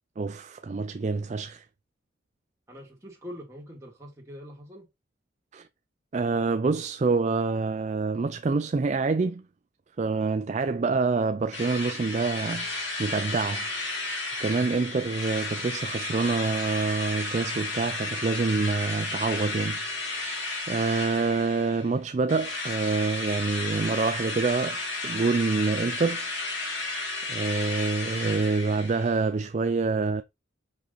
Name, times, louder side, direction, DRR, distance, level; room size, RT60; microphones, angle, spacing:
voice 1, 0.2-1.6 5.5-5.7 6.1-9.4 10.0-14.1 14.4-20.4 20.7-26.2 27.3-30.2, right 4 dB, 35° right, 0.4 m, -27 dB
voice 2, 2.7-4.9, equal, 15° right, 2.6 m, -43 dB
Drill, 11.5-21.9 22.3-29.2, left 2 dB, 70° left, 3.0 m, -33 dB
5.4 x 5.1 x 3.9 m
head